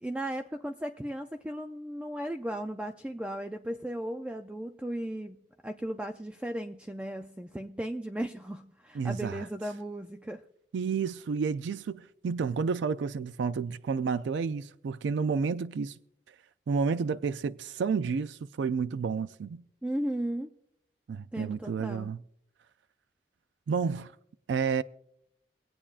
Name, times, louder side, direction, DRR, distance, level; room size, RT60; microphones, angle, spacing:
voice 1, 0.0-10.4 19.8-20.5 21.3-22.1, right 1 dB, 5° right, 0.3 m, -36 dB
voice 2, 8.9-9.5 10.7-16.0 16.7-19.6 21.1-22.2 23.7-24.1 24.5-24.8, right 5 dB, 85° right, 0.4 m, -30 dB
25.5 x 8.6 x 2.4 m
head